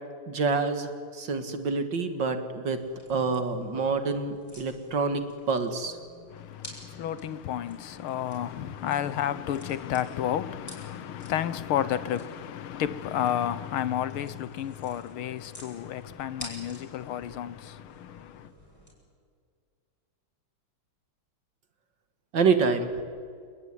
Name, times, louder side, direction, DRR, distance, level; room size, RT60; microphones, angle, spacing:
voice 1, 0.3-6.0 22.3-22.9, right 4 dB, 60° right, 2.5 m, -27 dB
sound 1, 2.8-18.9, equal, 5° left, 7.7 m, -50 dB
voice 2, 6.3-18.5, left 10 dB, 80° left, 1.8 m, -31 dB
29.0 x 19.5 x 9.9 m
omnidirectional pair, 2.3 m